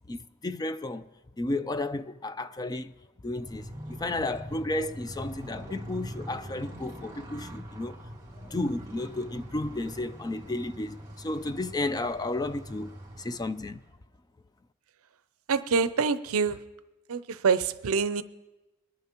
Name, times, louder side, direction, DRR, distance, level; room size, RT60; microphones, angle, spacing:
voice 1, 0.1-1.0 1.4-2.9 3.2-8.0 8.4-13.8, left 2 dB, 15° left, 0.3 m, -33 dB
Motorcycle, 3.3-13.9, equal, 15° right, 2.2 m, -43 dB
voice 2, 15.5-16.6 17.1-18.2, right 5 dB, 65° right, 0.5 m, -26 dB
22.5 x 10.5 x 2.9 m
head